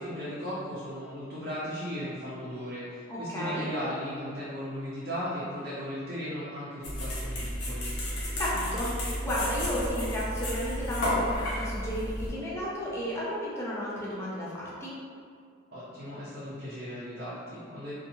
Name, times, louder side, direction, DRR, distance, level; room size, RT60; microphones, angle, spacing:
voice 1, 0.0-7.9 15.7-18.0, equal, 55° right, -10 dB, 0.5 m, -36 dB
voice 2, 3.1-3.7 8.4-14.9, equal, 15° left, -7 dB, 0.4 m, -33 dB
sound 1, 6.8-12.3, equal, 90° left, 0.7 m, -32 dB
2.7 x 2.3 x 2.6 m, 2.2 s
head